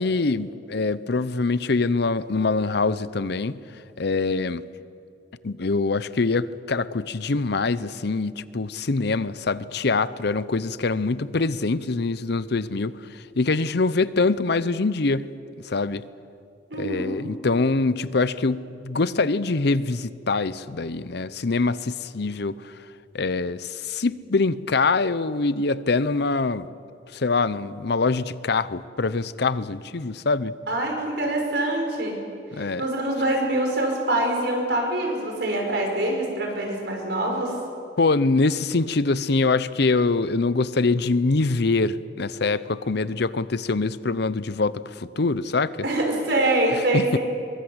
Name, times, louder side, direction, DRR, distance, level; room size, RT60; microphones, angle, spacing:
voice 1, 0.0-3.6 4.0-4.7 5.4-15.3 15.6-16.0 16.8-22.7 23.1-26.7 27.1-30.5 32.5-32.8 38.0-45.8 46.9-47.2, left 3 dB, 65° left, 16 dB, 0.7 m, -24 dB
voice 2, 16.7-17.2 30.7-32.2 32.5-37.5 45.8-47.2, right 1 dB, 65° right, 1 dB, 5.8 m, -25 dB
23.0 x 22.0 x 8.1 m, 2.5 s
head